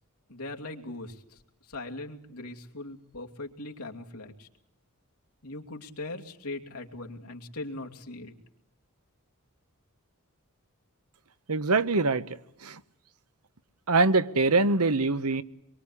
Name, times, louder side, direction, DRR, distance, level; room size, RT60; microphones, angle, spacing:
voice 1, 0.3-1.4 1.7-4.5 5.4-8.3, left 2 dB, 90° left, 2.7 m, -40 dB
voice 2, 11.5-12.2 12.6-12.8 13.9-15.4, right 3 dB, 90° right, 1.2 m, -23 dB
25.0 x 23.0 x 9.9 m
head